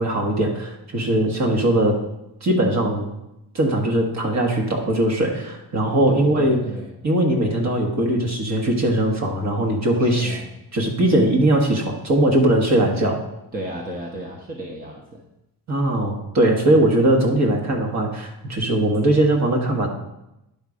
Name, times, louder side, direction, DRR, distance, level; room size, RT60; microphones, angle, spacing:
voice 1, 0.0-2.0 2.4-3.1 3.5-6.6 7.0-10.4 10.7-13.2 15.7-19.9, right 1 dB, 40° right, 1 dB, 1.5 m, -20 dB
voice 2, 6.1-6.9 10.0-10.5 13.5-15.2 16.8-16.9, right 1 dB, 20° right, -1 dB, 0.9 m, -34 dB
10.5 x 4.1 x 4.9 m, 0.88 s
cardioid pair, 140°, 40 cm